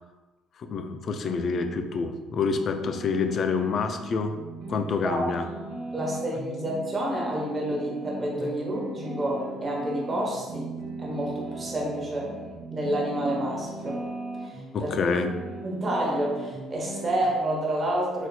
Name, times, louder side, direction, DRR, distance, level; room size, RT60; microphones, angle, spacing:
voice 1, 0.6-4.3 4.7-5.4 14.7-15.3, left 5 dB, 50° left, 7 dB, 0.3 m, -27 dB
sound 1, 1.2-1.8 2.2-17.2, right 2 dB, 60° right, 0.9 m, -38 dB
voice 2, 5.9-10.7 11.0-12.3 12.7-14.0 14.4-14.9 15.6-18.3, right 1 dB, 30° right, -2 dB, 0.9 m, -29 dB
4.0 x 2.7 x 2.2 m, 1.2 s
cardioid pair, 100°, 0 cm